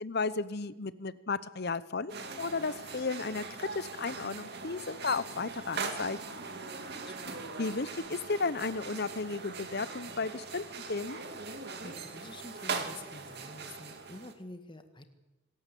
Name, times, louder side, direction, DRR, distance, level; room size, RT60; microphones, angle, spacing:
voice 1, 0.0-6.4 7.6-11.2, left 4 dB, 50° left, 16 dB, 0.9 m, -34 dB
sound 1, 2.1-14.3, right 4 dB, 50° right, 2.3 m, -41 dB
voice 2, 7.0-7.5 11.8-15.0, left 2 dB, 25° left, 8 dB, 1.7 m, -48 dB
26.5 x 12.5 x 8.4 m, 1.1 s
head